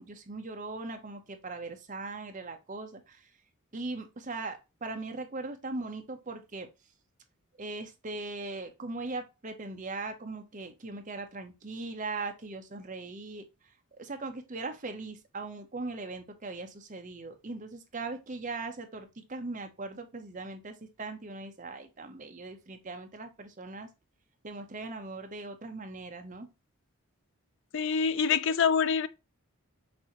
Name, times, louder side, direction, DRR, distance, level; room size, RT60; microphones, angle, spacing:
voice 1, 0.0-3.3 3.7-6.7 7.6-23.9 24.4-26.5, right 3 dB, 35° right, 0.7 m, -39 dB
voice 2, 27.7-29.1, left 6 dB, 55° left, 0.4 m, -25 dB
6.1 x 2.6 x 2.9 m
head